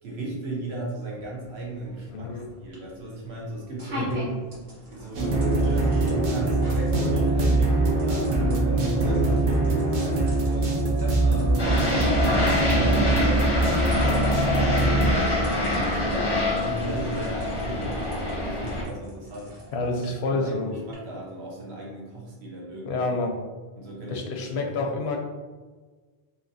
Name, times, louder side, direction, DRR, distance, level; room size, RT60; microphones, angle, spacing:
voice 1, 0.0-4.1 4.9-19.7 20.0-23.1 23.8-25.0, right 1 dB, 80° right, -4 dB, 1.1 m, -36 dB
sound 1, 1.4-20.9, right 1 dB, 50° right, 1.2 m, -44 dB
voice 2, 2.1-2.5 4.0-4.2 19.7-20.7 22.9-23.3 24.1-25.2, left 3 dB, 85° left, 3 dB, 0.8 m, -28 dB
sound 2, 5.1-15.1, right 2 dB, 65° right, 0.7 m, -23 dB
sound 3, 11.6-18.8, left 1 dB, 30° left, 0.5 m, -25 dB
3.0 x 2.8 x 2.6 m, 1.4 s
omnidirectional pair, 1.1 m